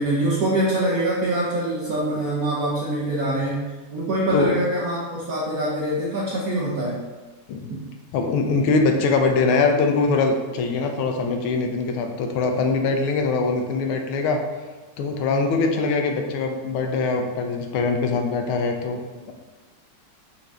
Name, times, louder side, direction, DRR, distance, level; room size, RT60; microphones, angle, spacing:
voice 1, 0.0-7.0 7.7-7.8, right 1 dB, 65° right, -7 dB, 0.9 m, -24 dB
voice 2, 8.1-14.4 15.0-19.3, left 4 dB, 80° left, 4 dB, 1.4 m, -22 dB
5.9 x 2.6 x 3.2 m, 1.3 s
omnidirectional pair, 2.4 m